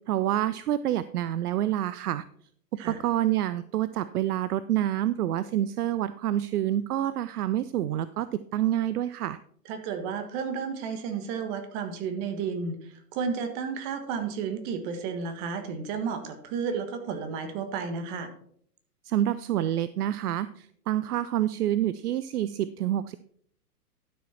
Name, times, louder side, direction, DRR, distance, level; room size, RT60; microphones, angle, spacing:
voice 1, 0.1-2.2 2.9-9.4 19.0-23.1, right 12 dB, 70° right, 15 dB, 0.6 m, -27 dB
voice 2, 9.7-12.8 13.1-18.3, right 6 dB, 35° right, 7 dB, 1.6 m, -32 dB
11.5 x 6.5 x 4.3 m, 0.62 s
hypercardioid pair, 120°, 47 cm